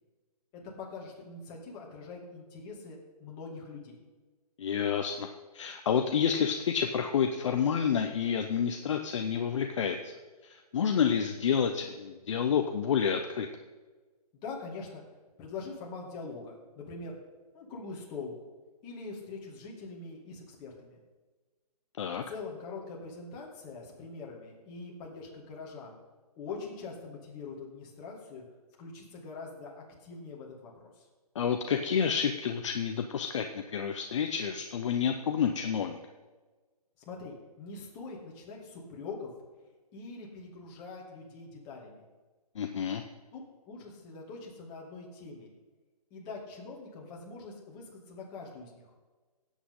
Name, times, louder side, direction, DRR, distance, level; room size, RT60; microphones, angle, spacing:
voice 1, 0.5-4.0 14.3-15.0 15.4-17.2 17.5-18.3 18.8-21.0 22.3-26.0 26.4-28.4 28.8-31.0 37.1-39.3 39.9-42.1 43.3-45.5 46.1-48.9, left 4 dB, 20° left, -2 dB, 2.5 m, -43 dB
voice 2, 4.6-5.3 5.5-10.1 10.4-13.5 22.0-22.2 31.3-36.0 42.5-43.0, left 7 dB, 50° left, 5 dB, 0.8 m, -29 dB
17.0 x 8.3 x 3.8 m, 1.3 s
hypercardioid pair, 155°, 20 cm